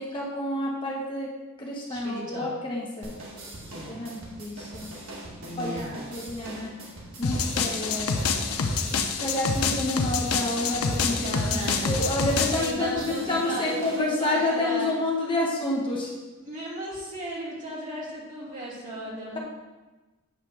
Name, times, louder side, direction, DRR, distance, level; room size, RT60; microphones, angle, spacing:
voice 1, 0.0-1.3 1.6-3.1 3.9-4.9 5.6-6.7 7.2-8.3 8.9-11.6 11.9-16.1, left 2 dB, 25° left, -3 dB, 1.0 m, -29 dB
voice 2, 1.9-2.5 3.6-4.2 5.4-6.3 11.2-12.2 12.5-14.9 16.5-19.4, equal, 40° right, -6 dB, 2.4 m, -35 dB
sound 1, 3.0-14.0, right 1 dB, 70° right, 1.5 m, -41 dB
sound 2, 7.2-12.7, left 4 dB, 85° left, 0.6 m, -27 dB
8.4 x 3.3 x 6.0 m, 1.2 s
head